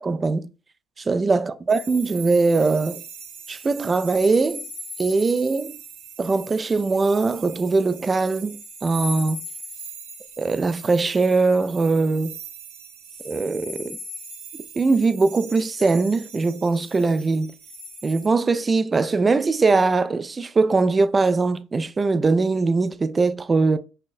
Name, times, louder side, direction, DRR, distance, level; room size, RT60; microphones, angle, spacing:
voice 1, 0.0-0.5 1.0-3.0 3.5-4.7 5.0-5.8 6.2-9.4 10.4-12.4 13.2-14.0 14.8-17.5 18.0-23.8, right 3 dB, 25° right, 0.3 m, -21 dB
sound 1, 1.7-18.3, right 1 dB, 85° right, 1.0 m, -39 dB
6.2 x 2.1 x 2.5 m
cardioid pair, 100°, 0 cm